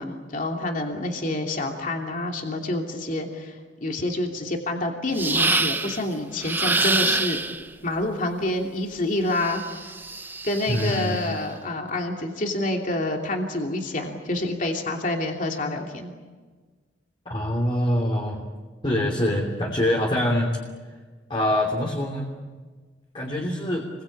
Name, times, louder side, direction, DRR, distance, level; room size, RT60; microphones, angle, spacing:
voice 1, 0.0-7.4 7.8-9.9 10.4-16.1, left 2 dB, 45° left, 2 dB, 2.9 m, -28 dB
sound 1, 5.1-6.0 6.4-7.7 9.3-11.2, right 3 dB, 10° right, 1.0 m, -26 dB
voice 2, 10.7-11.2 17.2-18.4 18.8-20.6 21.3-22.3 23.1-23.8, left 1 dB, 25° left, 0 dB, 3.0 m, -24 dB
29.5 x 22.5 x 8.7 m, 1.4 s
head